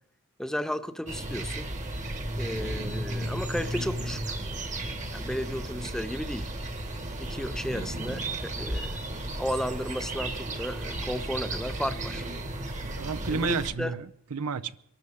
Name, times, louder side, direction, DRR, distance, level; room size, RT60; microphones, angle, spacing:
voice 1, 0.4-1.7 2.4-4.4 5.1-6.5 7.2-9.0 9.4-12.3 13.3-14.0, equal, ahead, 0.5 m, -34 dB
sound 1, 1.1-13.7, right 1 dB, 35° right, 1.4 m, -34 dB
voice 2, 12.8-14.8, right 5 dB, 80° right, 0.6 m, -32 dB
24.0 x 13.0 x 3.6 m
head